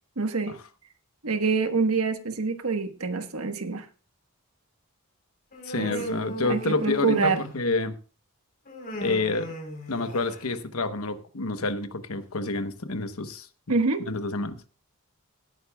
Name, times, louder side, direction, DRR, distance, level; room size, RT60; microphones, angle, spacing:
voice 1, 0.2-0.5 1.2-3.8 5.8-5.9 6.4-7.4 13.7-14.0, right 4 dB, 80° right, 7 dB, 1.3 m, -26 dB
Human voice, 5.5-7.8 8.7-10.5, equal, 45° left, 4.2 m, -36 dB
voice 2, 5.6-8.0 9.0-9.5 9.9-13.5 14.1-14.6, left 3 dB, 80° left, 10 dB, 1.1 m, -28 dB
17.5 x 9.5 x 2.3 m, 0.35 s
head